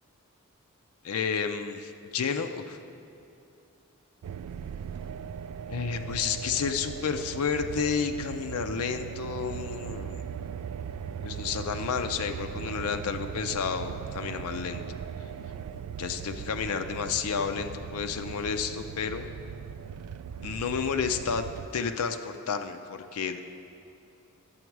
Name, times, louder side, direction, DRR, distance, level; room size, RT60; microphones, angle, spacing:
voice 1, 1.0-2.8 5.7-10.2 11.2-14.8 16.0-19.3 20.4-21.4 21.7-23.4, left 6 dB, 75° left, 7 dB, 0.5 m, -31 dB
sound 1, 4.2-21.7, right 7 dB, 80° right, 0.3 m, -39 dB
11.0 x 7.9 x 4.6 m, 2.7 s
head